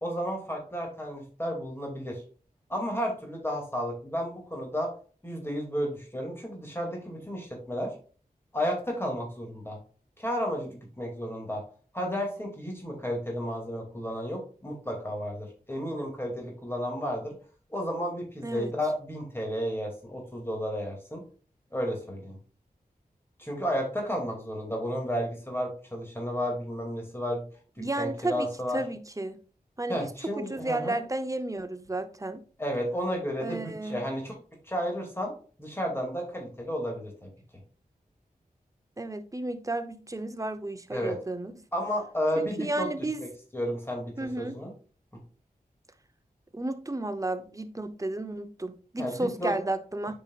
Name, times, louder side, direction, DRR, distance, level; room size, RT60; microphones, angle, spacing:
voice 1, 0.0-2.2 2.7-4.9 5.2-7.9 8.5-9.8 10.2-11.6 11.9-17.3 17.7-21.2 21.7-22.4 23.4-27.4 28.0-28.8 29.9-31.0 32.6-34.3 34.6-35.3 35.6-37.3 40.9-41.2 41.7-42.9 43.2-43.3 43.5-44.1 44.4-44.7 49.0-49.5, equal, 15° left, 2.5 m, -32 dB
voice 2, 27.8-28.5 28.7-29.4 29.8-30.1 30.4-32.4 33.4-34.1 39.0-41.5 42.4-43.2 44.2-44.6 46.5-50.1, right 2 dB, 20° right, 0.7 m, -32 dB
8.7 x 5.2 x 2.4 m
wide cardioid pair, 55°, 15 cm